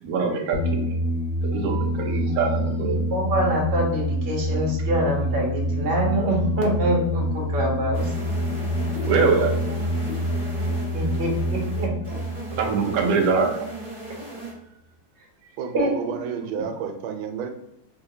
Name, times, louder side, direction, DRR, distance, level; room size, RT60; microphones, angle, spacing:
voice 1, 0.0-0.9 1.5-3.1 9.1-9.8 12.6-13.7, right 5 dB, 70° right, 1 dB, 0.8 m, -23 dB
sound 1, 0.5-13.7, equal, 80° left, 0.6 m, -27 dB
voice 2, 3.1-8.1 10.9-12.2 15.7-15.9, right 1 dB, 45° right, -1 dB, 0.8 m, -25 dB
sound 2, 7.9-14.5, right 1 dB, 20° right, 1.1 m, -36 dB
voice 3, 15.6-17.5, right 6 dB, 85° right, 5 dB, 1.4 m, -31 dB
3.6 x 2.8 x 2.7 m, 0.82 s
omnidirectional pair, 2.2 m